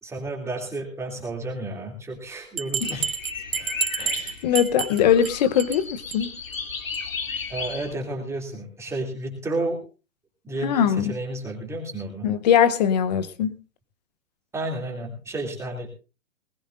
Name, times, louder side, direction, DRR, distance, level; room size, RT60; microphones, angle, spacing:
voice 1, 0.0-3.1 3.5-3.8 7.5-9.8 10.4-12.3 14.5-15.9, right 2 dB, 5° right, 0 dB, 2.8 m, -32 dB
Bell, 2.6-5.3 5.6-5.8 6.1-6.2 6.5-6.6 6.9-7.0, right 7 dB, 90° right, 1.8 m, -29 dB
sound 1, 2.8-7.9, left 5 dB, 80° left, 2.4 m, -35 dB
voice 2, 4.0-6.3 10.6-11.2 12.2-13.5, left 8 dB, 30° left, 13 dB, 0.9 m, -21 dB
20.0 x 15.5 x 2.6 m, 0.31 s
hypercardioid pair, 145°, 39 cm